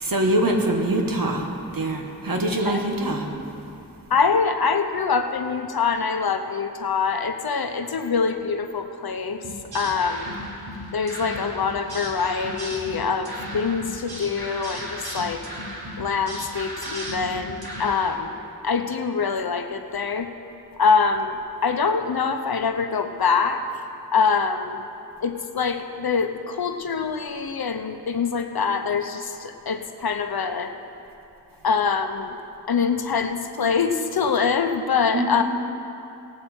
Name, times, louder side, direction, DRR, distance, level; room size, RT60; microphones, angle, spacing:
voice 1, 0.0-3.3 35.1-35.4, right 1 dB, 60° right, 1 dB, 1.5 m, -24 dB
voice 2, 4.1-9.4 9.7-10.3 10.9-15.4 16.0-20.3 20.8-23.6 24.1-24.8 25.2-30.7 31.6-32.3 32.7-35.4, left 5 dB, 75° left, 7 dB, 0.8 m, -24 dB
sound 1, 9.4-18.2, equal, 80° right, 1.7 m, -35 dB
18.5 x 7.6 x 4.4 m, 2.8 s
wide cardioid pair, 80°, 37 cm